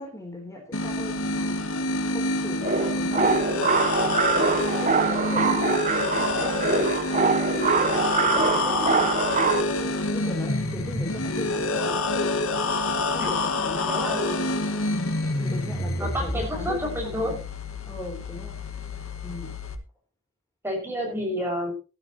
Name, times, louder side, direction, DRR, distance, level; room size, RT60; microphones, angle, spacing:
voice 1, 0.0-1.8 2.1-3.8 4.3-5.8 6.1-6.9 7.5-9.7 10.1-12.3 13.1-14.3 15.3-17.4 17.9-18.6 19.2-19.6 21.1-21.3, left 1 dB, 15° left, 0 dB, 3.8 m, -38 dB
sound 1, 0.7-19.8, left 2 dB, 75° left, 2.0 m, -27 dB
sound 2, 2.6-9.6, right 5 dB, 35° right, 0.8 m, -24 dB
voice 2, 13.8-14.6 16.0-17.4 20.6-21.7, equal, 10° right, 0 dB, 6.4 m, -30 dB
16.5 x 12.0 x 3.1 m, 0.33 s
head